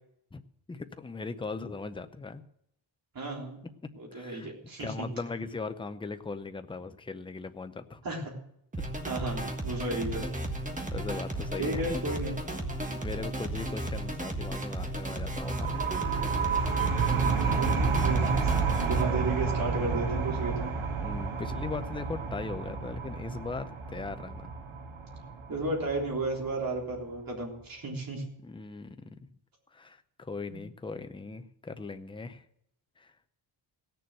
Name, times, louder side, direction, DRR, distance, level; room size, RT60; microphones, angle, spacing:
voice 1, 0.7-2.4 4.1-4.5 4.8-8.0 10.9-12.0 13.0-15.8 17.4-17.9 21.0-24.5 28.4-29.1 29.7-32.4 33.0-33.1, left 4 dB, 10° left, 9 dB, 0.6 m, -39 dB
voice 2, 3.1-3.6 3.9-5.1 8.0-8.3 9.1-10.3 11.6-12.4 16.8-18.5 18.8-20.7 25.5-28.2 30.5-30.6, right 2 dB, 45° right, -1 dB, 3.6 m, -34 dB
sound 1, 8.7-19.0, right 1 dB, 15° right, 1.5 m, -34 dB
sound 2, 15.4-26.8, right 5 dB, 70° right, 2.0 m, -30 dB
17.0 x 6.9 x 7.7 m, 0.75 s
wide cardioid pair, 155°, 49 cm